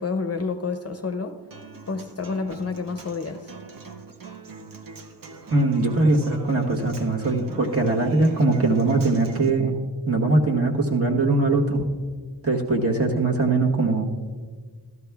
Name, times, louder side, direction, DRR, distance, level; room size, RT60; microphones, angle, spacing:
voice 1, 0.0-1.4 1.9-3.5, left 4 dB, 35° left, 6 dB, 0.5 m, -29 dB
Human voice / Acoustic guitar, 1.5-9.5, right 4 dB, 55° right, 0.8 m, -42 dB
voice 2, 5.5-9.8 10.1-11.9 12.4-14.1, right 2 dB, 35° right, -1 dB, 1.2 m, -21 dB
15.0 x 12.5 x 2.3 m, 1.5 s
wide cardioid pair, 125°, 41 cm